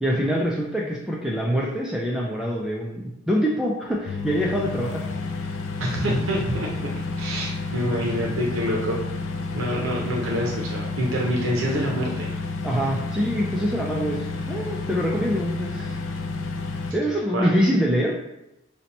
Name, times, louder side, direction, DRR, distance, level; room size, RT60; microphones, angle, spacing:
voice 1, 0.0-5.1 12.6-16.0 16.9-18.2, equal, 5° right, -3 dB, 0.3 m, -25 dB
sound 1, 4.1-16.9, left 3 dB, 75° left, 0.4 m, -30 dB
voice 2, 5.8-6.9 7.2-9.0 9.5-12.3 17.3-17.5, equal, 85° right, -2 dB, 0.6 m, -26 dB
2.8 x 2.1 x 4.0 m, 0.86 s
head